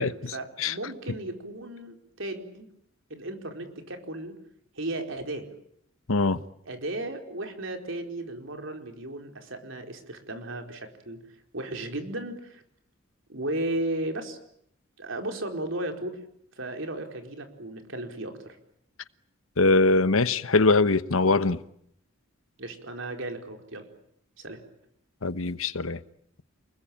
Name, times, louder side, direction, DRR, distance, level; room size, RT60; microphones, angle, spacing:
voice 1, 0.0-2.7 3.1-4.4 4.7-5.5 6.7-11.2 11.5-12.6 13.3-14.4 15.0-16.2 16.6-18.6 22.6-23.9 24.4-24.6, right 1 dB, 65° right, 4.6 m, -35 dB
voice 2, 6.1-6.4 19.6-21.6 25.2-26.0, left 3 dB, 90° left, 1.1 m, -22 dB
29.0 x 21.0 x 9.0 m
head